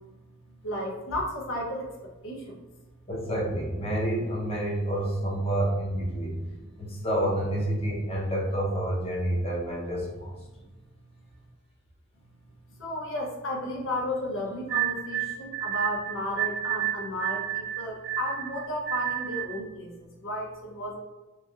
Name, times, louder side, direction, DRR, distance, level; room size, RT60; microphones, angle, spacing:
voice 1, 0.6-2.6 6.5-6.6 12.8-21.0, left 1 dB, 70° left, -1 dB, 0.6 m, -33 dB
voice 2, 3.1-6.4 6.8-10.3, right 1 dB, 30° left, -5 dB, 0.7 m, -28 dB
sound 1, 14.7-19.6, right 13 dB, 50° right, 0.8 m, -31 dB
3.0 x 2.6 x 2.3 m, 1.1 s
head